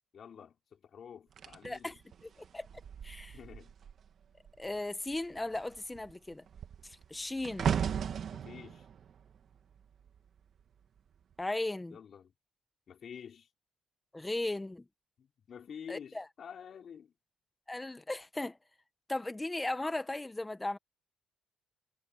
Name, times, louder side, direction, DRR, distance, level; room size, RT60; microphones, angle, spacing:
voice 1, 0.1-2.0 3.3-3.7 8.3-8.9 11.9-12.3 12.9-13.5 15.2-17.1, left 7 dB, 50° left, 4.9 m, -49 dB
sound 1, 1.4-4.1 4.4-4.8 5.1-10.4 11.1-11.4, right 8 dB, 55° right, 2.3 m, -37 dB
voice 2, 1.6-1.9 2.2-2.7 3.0-3.4 4.6-6.4 6.8-7.8 11.4-12.0 14.1-14.9 15.9-16.2 17.7-18.6 19.1-20.8, left 2 dB, 10° left, 1.2 m, -37 dB
cardioid pair, 105°, 0 cm